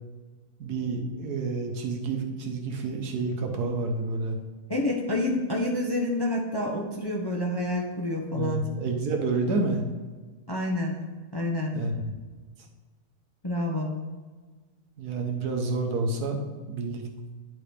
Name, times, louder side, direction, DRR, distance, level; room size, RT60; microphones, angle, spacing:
voice 1, 0.6-4.4 8.3-9.8 11.7-12.1 15.0-16.4 16.7-17.0, right 3 dB, 90° right, 3 dB, 1.5 m, -29 dB
voice 2, 4.7-8.6 10.5-10.9 11.3-11.7 13.4-13.9, left 1 dB, 25° left, -1 dB, 0.5 m, -28 dB
10.5 x 3.8 x 3.3 m, 1.4 s
omnidirectional pair, 1.6 m